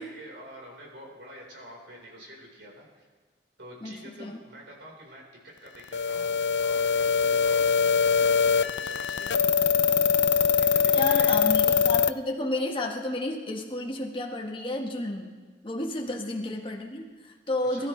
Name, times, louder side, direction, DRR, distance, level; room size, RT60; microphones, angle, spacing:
voice 1, 0.0-3.1 3.6-7.6 8.1-9.3 10.7-11.5 16.1-16.2 17.7-17.9, equal, 75° right, -2 dB, 4.5 m, -47 dB
voice 2, 3.8-4.4 10.9-15.3 15.6-17.9, left 1 dB, 30° left, 1 dB, 1.6 m, -32 dB
sound 1, 5.9-12.1, left 7 dB, 70° left, 0.4 m, -23 dB
21.5 x 12.5 x 3.3 m, 1.5 s
head